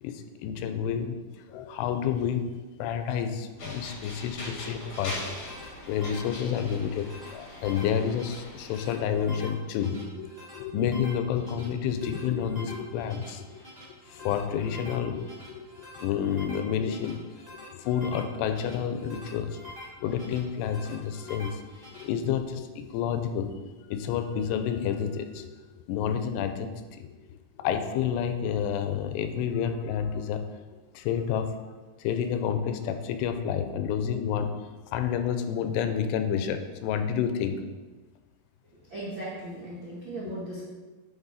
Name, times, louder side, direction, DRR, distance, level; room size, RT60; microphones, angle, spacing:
voice 1, 0.0-5.2 5.9-13.7 14.1-17.2 17.7-19.7 20.0-21.6 21.9-25.5 25.9-27.1 27.6-30.4 30.9-31.6 32.0-34.6 34.9-37.6 40.3-40.4, left 8 dB, 90° left, 8 dB, 2.8 m, -29 dB
sound 1, 3.6-9.2, left 1 dB, 50° left, 1.6 m, -41 dB
sound 2, 4.7-22.0, left 1 dB, 15° right, 1.4 m, -47 dB
voice 2, 38.9-40.6, right 1 dB, 90° right, -7 dB, 1.0 m, -37 dB
9.7 x 5.5 x 4.1 m, 1.3 s
omnidirectional pair, 4.8 m